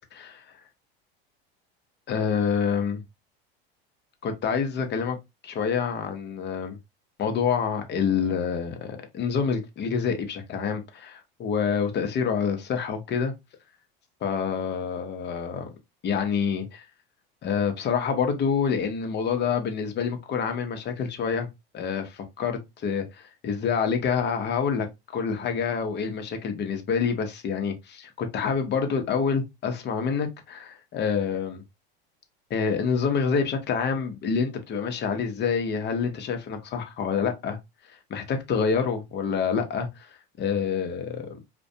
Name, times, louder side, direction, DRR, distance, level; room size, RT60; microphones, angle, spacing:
voice 1, 2.1-3.0 4.2-5.2 5.4-6.8 7.2-13.3 14.2-15.7 16.0-16.9 17.4-21.5 21.7-24.9 25.1-31.6 32.5-37.6 38.1-40.1 40.4-41.3, left 6 dB, 35° left, 0.8 m, -27 dB
2.4 x 2.1 x 2.7 m
hypercardioid pair, 90°, 29 cm